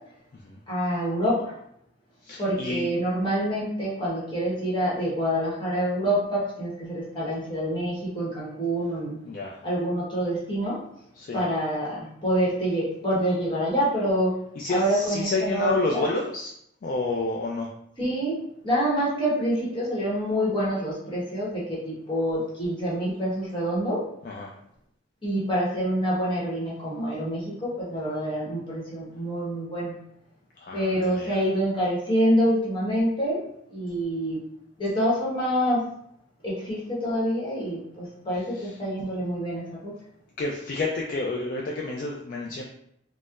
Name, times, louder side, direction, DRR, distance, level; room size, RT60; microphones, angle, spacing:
voice 1, 0.7-1.5 2.4-9.2 9.6-10.8 11.3-14.3 14.7-16.1 18.0-24.0 25.2-29.9 30.7-33.4 33.7-34.4 34.8-35.8 36.4-39.9, equal, 25° left, -7 dB, 1.1 m, -26 dB
voice 2, 2.2-2.9 9.2-9.6 11.2-11.4 14.6-16.5 16.8-17.7 24.2-24.5 30.6-31.4 38.4-38.8 40.4-42.6, left 2 dB, 45° left, -1 dB, 0.3 m, -30 dB
4.2 x 2.0 x 2.4 m, 0.72 s
head